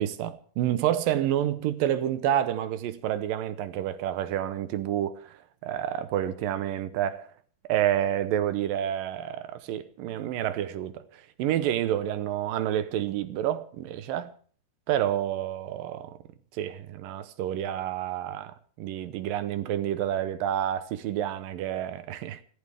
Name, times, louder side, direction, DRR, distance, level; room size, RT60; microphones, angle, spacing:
voice 1, 0.0-7.3 7.7-14.3 14.9-16.2 16.5-22.4, right 11 dB, 75° right, 2.5 m, -29 dB
23.5 x 15.0 x 3.5 m
omnidirectional pair, 4.4 m